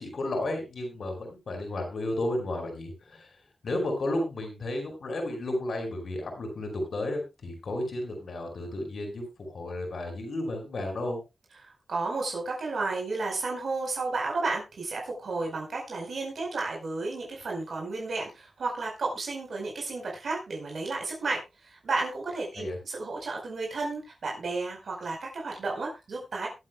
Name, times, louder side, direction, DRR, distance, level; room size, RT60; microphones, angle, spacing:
voice 1, 0.0-3.3 3.6-11.2 22.6-22.8, left 1 dB, 75° left, 3 dB, 5.2 m, -33 dB
voice 2, 11.6-26.5, right 3 dB, 80° right, 0 dB, 4.6 m, -32 dB
21.5 x 8.4 x 2.3 m, 0.25 s
wide cardioid pair, 75°, 0 cm